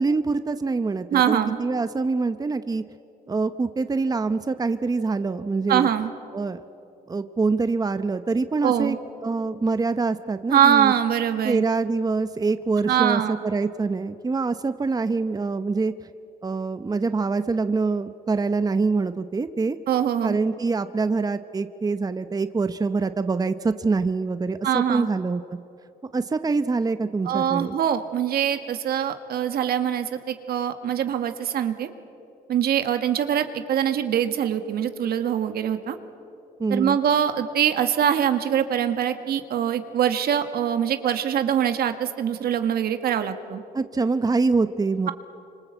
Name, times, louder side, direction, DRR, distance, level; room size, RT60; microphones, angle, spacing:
voice 1, 0.0-2.8 3.3-5.9 6.3-6.6 7.1-8.9 9.2-10.9 11.4-15.9 16.4-19.8 20.2-25.4 26.1-27.7 36.6-37.0 43.7-45.1, right 4 dB, 25° right, 11 dB, 0.8 m, -25 dB
voice 2, 1.1-1.6 5.7-6.1 8.6-9.0 10.5-11.6 12.9-13.4 19.9-20.4 24.6-25.1 27.3-31.9 32.5-36.0 36.7-43.6, right 9 dB, 80° right, 8 dB, 1.7 m, -23 dB
27.0 x 25.5 x 8.1 m, 2.8 s
cardioid pair, 95°, 16 cm